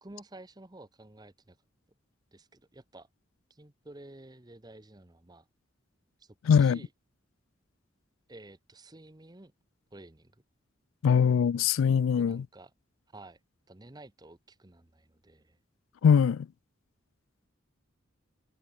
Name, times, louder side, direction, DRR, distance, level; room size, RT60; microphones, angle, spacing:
voice 1, 0.0-1.6 2.3-3.1 3.5-5.5 6.2-6.9 8.3-9.5 9.9-10.3 12.2-12.7 13.1-13.4 13.7-15.6, right 2 dB, 20° right, 0.9 m, -51 dB
voice 2, 6.5-6.8 11.0-12.4 16.0-16.5, left 7 dB, 80° left, 0.3 m, -22 dB
head